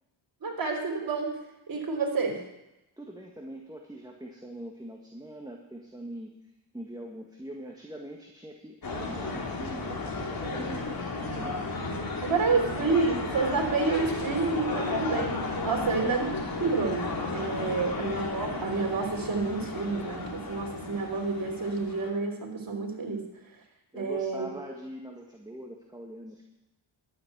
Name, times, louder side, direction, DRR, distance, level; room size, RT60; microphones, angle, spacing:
voice 1, 0.4-1.4 1.7-2.4 12.2-15.4 15.6-16.3 16.6-23.3 23.9-24.5, right 4 dB, 45° right, 0 dB, 3.5 m, -29 dB
voice 2, 3.0-6.3 6.7-11.6 12.0-13.0 15.7-16.1 17.7-17.8 23.9-26.5, right 1 dB, 10° right, 1 dB, 1.8 m, -43 dB
sound 1, 8.8-22.1, left 3 dB, 45° left, 3.1 m, -34 dB
12.0 x 7.6 x 8.2 m, 0.95 s
cardioid pair, 65°, 49 cm